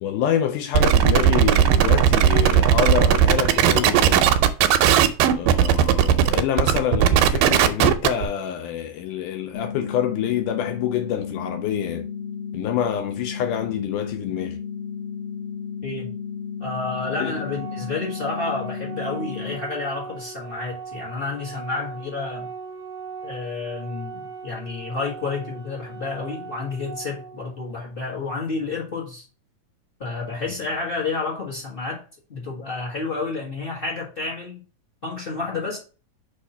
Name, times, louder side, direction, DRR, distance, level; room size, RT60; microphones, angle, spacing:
voice 1, 0.0-4.4 5.3-12.1 12.5-14.6 17.2-17.3, left 9 dB, 80° left, 1.9 m, -26 dB
sound 1, 0.7-8.3, right 9 dB, 85° right, 2.1 m, -17 dB
sound 2, 9.5-19.5, left 7 dB, 55° left, 2.0 m, -33 dB
voice 2, 16.6-22.5 23.2-29.2 30.0-32.0 32.3-34.6 35.0-35.8, left 3 dB, 35° left, 0.9 m, -30 dB
Organ, 16.9-27.9, right 6 dB, 20° right, 0.9 m, -39 dB
6.4 x 2.8 x 5.4 m
omnidirectional pair, 3.9 m